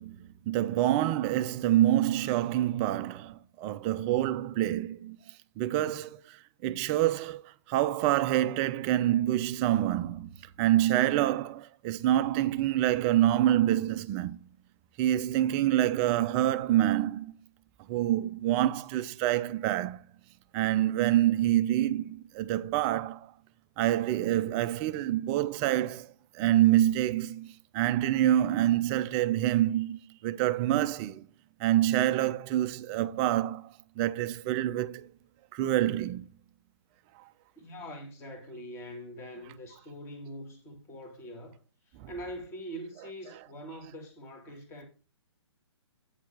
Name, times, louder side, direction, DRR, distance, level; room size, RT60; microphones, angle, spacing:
voice 1, 0.0-5.2 5.6-14.4 15.0-17.3 17.9-20.0 20.5-23.3 23.8-26.1 26.3-31.3 31.6-35.1 35.5-36.3 42.0-42.1, right 13 dB, 20° right, 0.4 m, -27 dB
voice 2, 37.5-41.6 41.8-44.8, equal, 15° left, 1.7 m, -43 dB
8.8 x 4.4 x 6.0 m
figure-of-eight pair, 130°, 15 cm